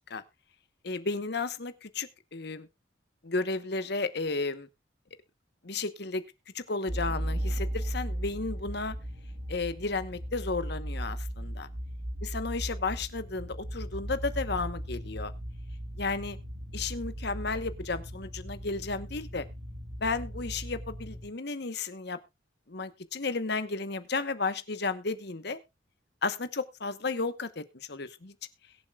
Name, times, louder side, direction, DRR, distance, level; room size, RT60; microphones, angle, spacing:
voice 1, 0.8-2.7 3.2-4.7 5.6-6.2 6.5-9.0 9.5-11.7 12.2-15.3 16.0-16.4 16.7-19.4 20.0-22.2 22.7-25.6 26.2-28.3, left 3 dB, 55° left, 12 dB, 1.1 m, -33 dB
sound 1, 6.9-21.3, equal, 65° right, 1.9 m, -37 dB
22.0 x 7.6 x 2.4 m, 0.24 s
head